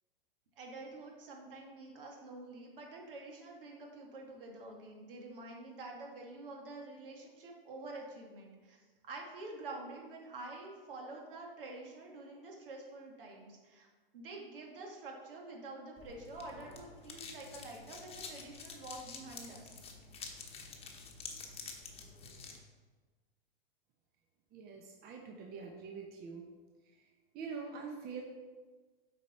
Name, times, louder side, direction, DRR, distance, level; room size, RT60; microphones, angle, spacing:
voice 1, 0.6-8.8 9.0-13.9 14.1-19.7, right 2 dB, 70° right, 0 dB, 2.1 m, -48 dB
sound 1, 16.0-22.6, left 4 dB, 20° left, 1.2 m, -49 dB
voice 2, 24.5-26.4 27.3-28.2, right 5 dB, 30° right, 2 dB, 1.0 m, -44 dB
8.0 x 5.1 x 4.3 m, 1.4 s
hypercardioid pair, 110°, 29 cm